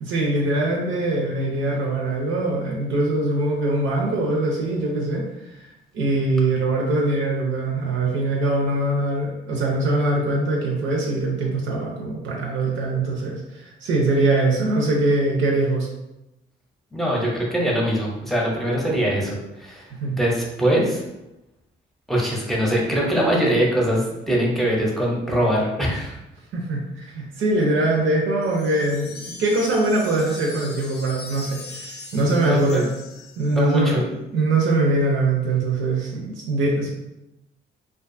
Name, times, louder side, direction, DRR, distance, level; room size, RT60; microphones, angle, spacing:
voice 1, 0.0-15.9 20.0-20.2 26.5-32.9 33.4-34.0 34.3-36.9, right 2 dB, 75° right, -2 dB, 0.6 m, -22 dB
voice 2, 16.9-21.0 22.1-26.2 32.1-32.9 33.5-34.0, equal, ahead, -3 dB, 0.7 m, -22 dB
Wind chime, 28.4-33.8, left 3 dB, 55° left, 0.5 m, -40 dB
2.5 x 2.3 x 2.5 m, 0.93 s
cardioid pair, 90°, 20 cm